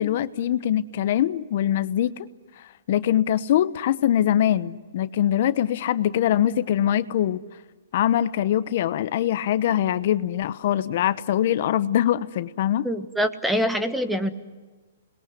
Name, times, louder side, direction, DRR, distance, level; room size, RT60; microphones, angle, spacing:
voice 1, 0.0-2.3 2.6-7.4 7.9-12.9, left 11 dB, 55° left, 15 dB, 1.0 m, -23 dB
voice 2, 12.8-14.3, equal, 5° right, 10 dB, 1.3 m, -24 dB
29.5 x 21.0 x 9.5 m, 1.3 s
hypercardioid pair, 150°, 0 cm